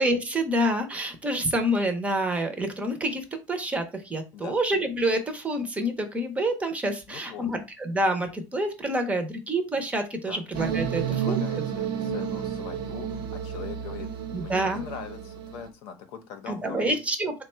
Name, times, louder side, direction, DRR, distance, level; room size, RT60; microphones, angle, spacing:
voice 1, 0.0-11.4 14.3-14.9 16.5-17.5, right 1 dB, 15° right, 6 dB, 0.6 m, -27 dB
voice 2, 7.1-7.5 10.3-10.4 11.0-17.0, left 7 dB, 65° left, 7 dB, 0.7 m, -41 dB
sound 1, 10.5-15.7, right 7 dB, 55° right, 0.5 m, -31 dB
3.6 x 2.2 x 4.2 m, 0.27 s
cardioid pair, 145°, 9 cm